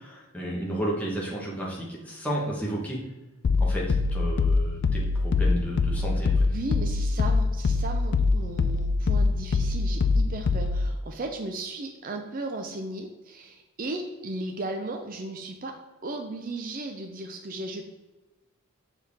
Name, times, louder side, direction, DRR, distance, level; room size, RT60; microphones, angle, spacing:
voice 1, 0.0-3.0 3.6-6.5, right 1 dB, 5° left, -4 dB, 1.2 m, -32 dB
sound 1, 3.4-10.9, left 3 dB, 50° left, 0.3 m, -24 dB
voice 2, 6.5-15.7 16.0-17.9, right 2 dB, 40° right, 4 dB, 0.5 m, -36 dB
6.8 x 4.6 x 3.5 m, 1.1 s
head